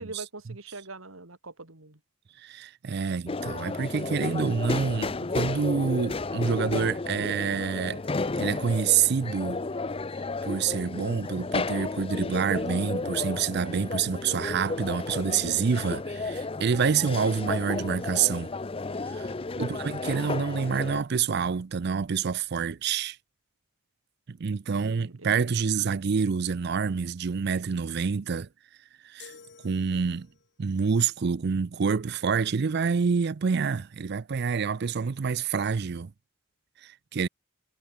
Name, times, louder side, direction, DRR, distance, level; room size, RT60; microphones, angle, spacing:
voice 1, 0.0-2.0 19.6-19.8 24.8-25.6, right 2 dB, 80° right, 3.4 m, -43 dB
voice 2, 2.4-9.6 10.4-18.5 19.1-19.3 19.6-23.2 24.3-28.5 29.0-29.3 29.6-30.3 30.6-36.1 36.8-37.3, right 6 dB, 50° right, 0.5 m, -27 dB
sound 1, 3.3-21.0, left 3 dB, 25° left, 0.6 m, -33 dB
sound 2, 29.2-30.6, left 6 dB, 55° left, 1.8 m, -51 dB
head